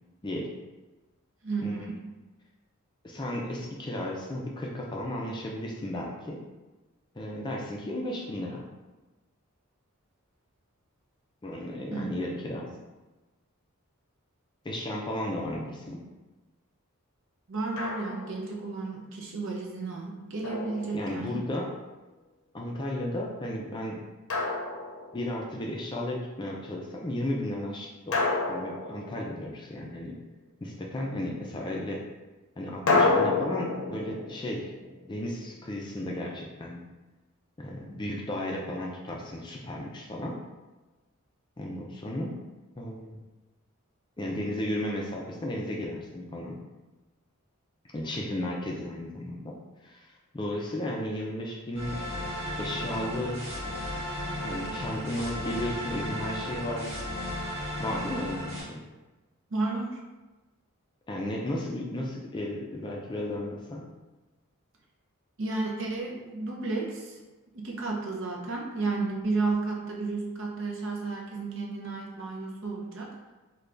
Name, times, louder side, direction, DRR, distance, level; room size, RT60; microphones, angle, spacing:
voice 1, 1.4-2.0 11.9-12.0 17.5-21.4 59.5-60.0 65.4-67.2 67.5-73.1, right 3 dB, 55° right, -1 dB, 0.6 m, -32 dB
voice 2, 3.0-6.4 7.1-8.6 11.4-12.7 14.6-16.0 20.9-21.7 22.5-24.0 25.1-28.1 28.5-30.1 30.6-32.0 32.6-34.7 35.1-36.8 37.6-40.4 41.6-42.4 42.8-43.2 44.2-46.6 47.9-49.5 49.8-50.0 50.3-52.0 52.6-53.4 54.4-57.0 57.8-58.8 61.1-63.8, left 1 dB, 20° left, -2 dB, 0.4 m, -34 dB
Drum, 17.8-18.4 20.4-21.5 24.3-25.5 28.1-29.8 32.9-35.8, left 3 dB, 65° left, 0.6 m, -29 dB
sound 1, 51.7-58.6, left 1 dB, 30° right, 1.4 m, -34 dB
3.3 x 2.2 x 3.7 m, 1.2 s
head